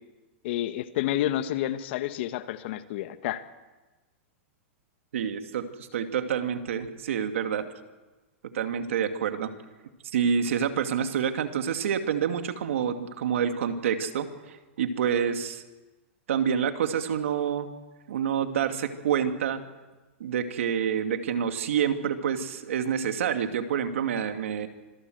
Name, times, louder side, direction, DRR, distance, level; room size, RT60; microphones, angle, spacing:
voice 1, 0.4-3.4, left 13 dB, 60° left, 11 dB, 1.2 m, -29 dB
voice 2, 5.1-7.7 8.5-9.5 10.1-14.3 14.8-15.6 16.3-17.7 18.1-19.6 20.2-24.7, right 8 dB, 80° right, 7 dB, 2.3 m, -27 dB
26.0 x 17.0 x 7.9 m, 1.2 s
hypercardioid pair, 140°, 7 cm